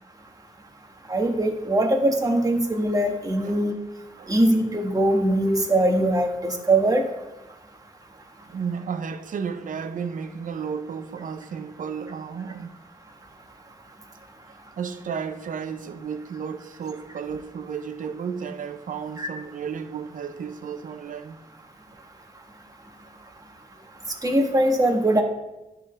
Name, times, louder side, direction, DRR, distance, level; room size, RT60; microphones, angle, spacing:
voice 1, 1.1-3.7 4.3-7.0 19.2-19.3 24.2-25.2, right 1 dB, 25° right, 1.3 m, -21 dB
voice 2, 8.5-12.7 14.8-21.4, right 6 dB, 65° right, 0.6 m, -33 dB
10.5 x 3.7 x 3.3 m
cardioid pair, 60°, 15 cm